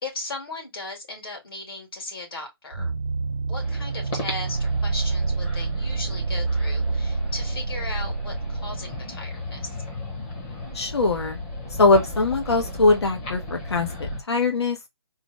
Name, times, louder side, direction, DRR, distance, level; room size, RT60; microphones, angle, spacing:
voice 1, 0.0-2.9 3.4-9.8, left 2 dB, 65° left, 2.5 m, -37 dB
sound 1, 2.7-9.9, right 4 dB, 75° right, 0.8 m, -27 dB
sound 2, 3.6-14.2, left 2 dB, 15° left, 0.8 m, -36 dB
voice 2, 10.7-11.4 11.8-14.8, left 3 dB, 90° left, 1.1 m, -21 dB
3.9 x 2.3 x 3.1 m
hypercardioid pair, 170°, 13 cm